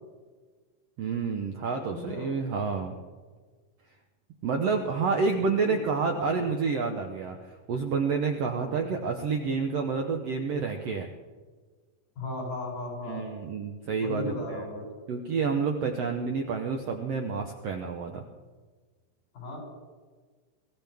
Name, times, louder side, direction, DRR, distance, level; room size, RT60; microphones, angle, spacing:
voice 1, 1.0-3.0 4.4-11.1 13.1-14.3 15.1-18.2, right 5 dB, 70° right, 3 dB, 1.5 m, -29 dB
voice 2, 1.9-2.3 4.9-6.5 8.6-8.8 12.2-13.2 14.0-14.9 19.3-19.6, left 1 dB, 80° left, -4 dB, 8.8 m, -37 dB
24.5 x 15.5 x 3.6 m, 1.4 s
omnidirectional pair, 4.1 m